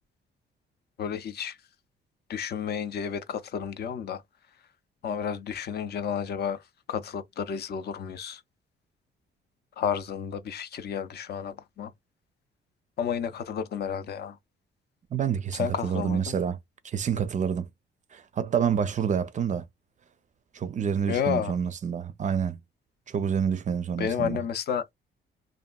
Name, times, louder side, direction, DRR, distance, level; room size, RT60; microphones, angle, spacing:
voice 1, 1.0-1.6 2.3-4.2 5.0-8.4 9.8-11.9 13.0-14.4 15.5-16.4 21.1-21.5 24.0-24.9, left 7 dB, 55° left, 0.5 m, -31 dB
voice 2, 15.1-16.6 16.8-17.7 18.1-19.7 20.5-22.6 23.1-24.4, right 7 dB, 40° right, 0.4 m, -28 dB
2.8 x 2.5 x 2.2 m
cardioid pair, 90°, 20 cm